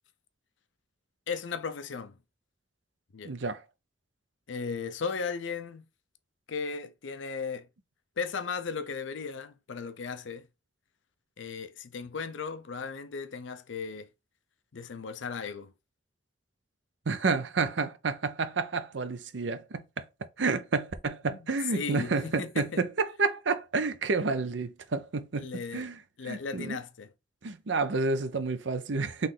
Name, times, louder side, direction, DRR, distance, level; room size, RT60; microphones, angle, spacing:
voice 1, 1.3-2.2 3.1-3.3 4.5-5.9 6.5-7.7 8.2-10.5 11.4-14.1 14.7-15.7 21.3-21.4 21.7-22.8 25.3-25.9 26.2-27.1, left 5 dB, 80° left, 0.6 m, -36 dB
voice 2, 3.2-3.6 17.1-20.0 20.4-25.5 25.7-26.0 26.2-26.8 27.4-29.3, right 4 dB, 70° right, 0.6 m, -30 dB
4.0 x 3.2 x 3.8 m
head